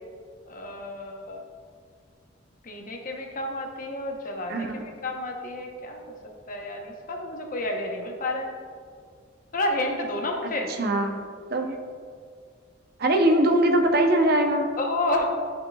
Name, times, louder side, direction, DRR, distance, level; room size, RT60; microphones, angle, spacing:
voice 1, 0.4-1.4 2.6-6.0 6.5-8.5 9.5-10.7 14.8-15.3, left 1 dB, 45° left, 2 dB, 0.9 m, -30 dB
voice 2, 4.5-4.8 10.4-10.5 10.8-11.2 11.5-11.8 13.0-14.7, right 1 dB, 55° right, 4 dB, 0.7 m, -21 dB
11.0 x 5.7 x 2.3 m, 2.1 s
head